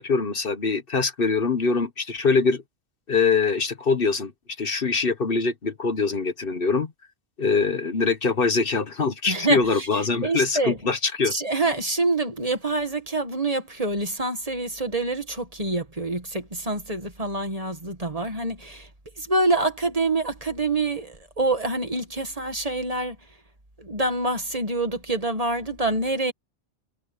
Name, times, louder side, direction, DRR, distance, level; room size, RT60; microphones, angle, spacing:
voice 1, 0.0-2.6 3.1-4.3 4.6-6.9 7.4-11.3, left 4 dB, 55° left, 1.4 m, -23 dB
voice 2, 9.3-10.8 11.3-18.9 19.2-23.2 23.8-26.3, right 2 dB, 35° right, 2.1 m, -26 dB
omnidirectional pair, 1.1 m